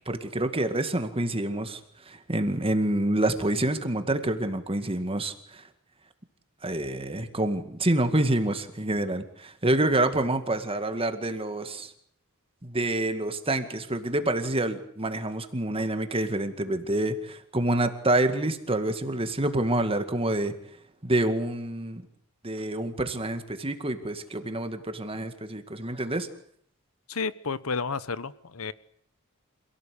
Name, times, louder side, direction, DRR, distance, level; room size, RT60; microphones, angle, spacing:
voice 1, 0.1-1.8 2.1-5.6 6.6-11.9 12.6-20.5 21.0-22.0 22.4-26.3, right 1 dB, 25° right, 8 dB, 2.1 m, -27 dB
voice 2, 27.1-28.7, left 4 dB, 85° left, 16 dB, 1.1 m, -31 dB
27.0 x 17.5 x 8.5 m, 0.65 s
head